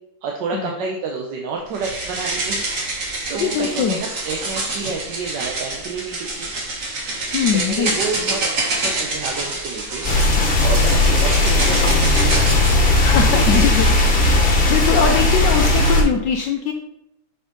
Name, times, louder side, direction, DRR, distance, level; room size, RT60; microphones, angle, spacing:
voice 1, 0.2-2.6 3.0-6.5 7.5-8.4 8.7-12.7 13.3-13.6 14.9-15.1 15.7-15.8, right 4 dB, 70° right, 0 dB, 1.3 m, -29 dB
sound 1, 1.7-12.8, right 2 dB, 45° right, 1.5 m, -26 dB
voice 2, 3.4-4.0 7.3-7.9 13.0-13.9 14.4-16.7, left 7 dB, 75° left, 3 dB, 1.1 m, -21 dB
sound 2, 10.0-16.0, left 2 dB, 30° left, 1.3 m, -16 dB
6.1 x 5.2 x 3.7 m, 0.85 s
omnidirectional pair, 2.2 m